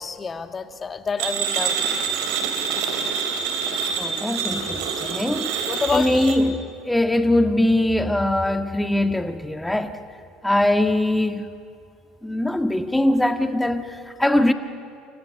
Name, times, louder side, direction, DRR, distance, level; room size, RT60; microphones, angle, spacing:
voice 1, 0.0-1.8 2.7-3.0 5.7-6.3, left 5 dB, 30° left, 1.8 m, -28 dB
sound 1, 1.2-6.4, right 6 dB, 65° right, 2.9 m, -26 dB
voice 2, 4.0-5.5 5.9-10.0 10.4-11.4 12.2-14.5, left 1 dB, 5° left, 1.6 m, -21 dB
28.0 x 25.5 x 6.7 m
hypercardioid pair, 65°, 0 cm